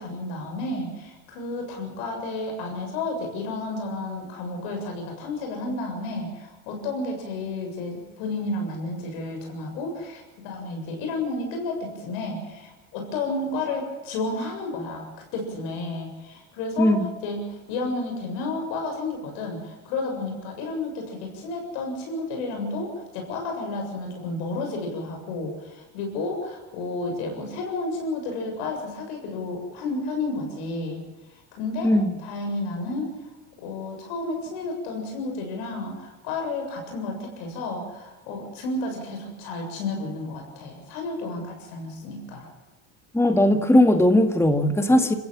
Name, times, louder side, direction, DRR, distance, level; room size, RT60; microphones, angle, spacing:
voice 1, 0.0-31.0 31.5-31.9 32.2-33.1 33.6-42.5, left 2 dB, 80° left, 3 dB, 7.4 m, -31 dB
voice 2, 16.8-17.1 31.8-32.1 43.1-45.1, left 1 dB, 5° left, 7 dB, 1.9 m, -18 dB
26.5 x 15.5 x 7.5 m, 1.1 s
supercardioid pair, 75°, 44 cm